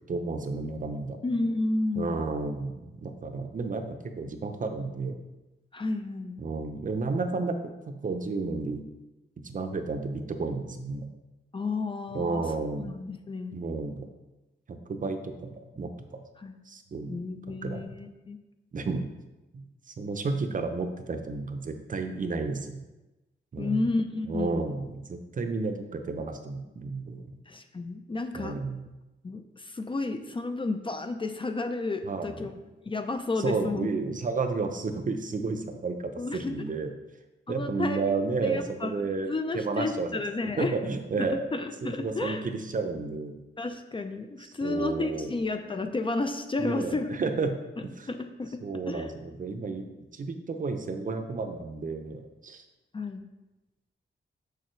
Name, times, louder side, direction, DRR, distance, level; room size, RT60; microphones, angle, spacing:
voice 1, 0.1-1.2 2.0-5.2 6.4-7.6 7.9-8.8 9.4-11.1 12.1-12.9 13.5-14.1 14.7-16.2 16.7-17.2 17.5-18.0 18.7-19.1 19.5-22.8 23.5-23.9 24.3-27.4 28.3-28.8 32.0-32.5 33.4-36.9 37.5-40.2 40.6-41.5 41.8-43.4 44.6-45.3 46.6-47.5 48.0-48.1 48.6-49.9 50.1-52.6, right 4 dB, 40° right, 6 dB, 0.6 m, -32 dB
voice 2, 1.2-2.2 5.7-6.4 11.5-12.4 12.8-13.6 16.4-16.6 17.1-18.4 23.6-24.6 27.5-28.6 29.2-32.5 32.8-33.9 36.2-36.5 37.5-38.9 39.3-40.8 41.2-42.5 43.6-47.1 48.1-48.6 48.9-49.1 52.9-53.3, left 3 dB, 25° left, 7 dB, 0.4 m, -31 dB
6.8 x 6.6 x 3.2 m, 1.0 s
wide cardioid pair, 160°, 20 cm